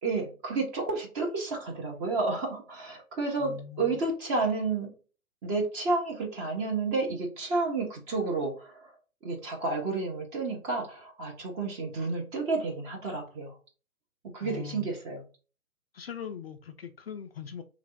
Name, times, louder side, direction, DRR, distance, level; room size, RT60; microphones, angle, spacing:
voice 1, 0.0-4.9 5.4-8.9 9.2-13.6 14.3-15.2, right 3 dB, 15° right, 0.6 m, -31 dB
voice 2, 3.4-4.0 14.4-14.9 15.9-17.6, left 8 dB, 45° left, 0.4 m, -41 dB
3.3 x 3.0 x 3.8 m
figure-of-eight pair, 130°, 43 cm